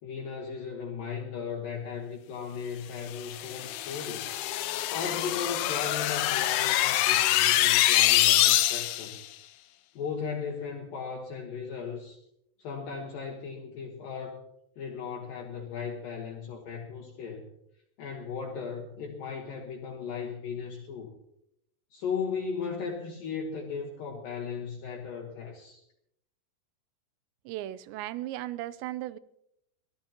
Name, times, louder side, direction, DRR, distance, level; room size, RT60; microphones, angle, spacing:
voice 1, 0.0-4.3 4.9-9.2 9.9-12.2 12.6-14.4 14.8-17.4 18.0-21.1 21.9-25.8, left 6 dB, 60° left, 2.9 m, -36 dB
sound 1, 3.2-9.2, left 14 dB, 75° left, 2.4 m, -25 dB
voice 2, 27.5-29.2, right 14 dB, 85° right, 2.9 m, -36 dB
23.5 x 16.0 x 3.0 m
omnidirectional pair, 5.0 m